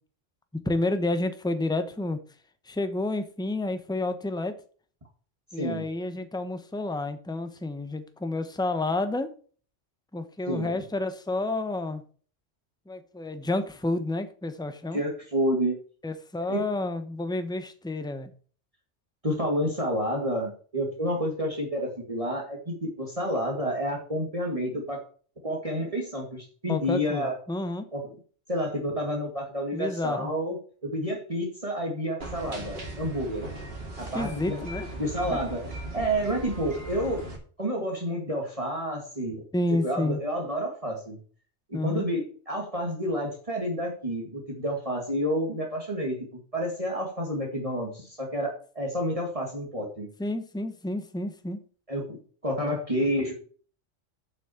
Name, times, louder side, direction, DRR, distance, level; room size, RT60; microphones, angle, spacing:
voice 1, 0.6-2.2 2.7-4.5 5.5-9.3 10.1-12.0 12.9-15.0 16.0-18.3 26.7-27.9 29.7-30.3 34.1-34.9 39.5-40.2 41.7-42.0 50.2-51.6, left 2 dB, 5° left, 9 dB, 0.9 m, -30 dB
voice 2, 14.9-15.8 16.5-16.6 19.2-25.0 25.4-27.3 27.9-28.0 28.5-30.6 30.8-33.5 34.0-34.6 35.0-35.6 35.9-37.2 37.6-39.4 39.8-41.2 41.7-46.2 46.5-50.1 51.9-53.3, equal, 30° right, 0 dB, 2.2 m, -29 dB
sound 1, 32.2-37.4, right 2 dB, 55° right, 2.6 m, -38 dB
7.4 x 6.2 x 7.0 m, 0.42 s
omnidirectional pair, 1.2 m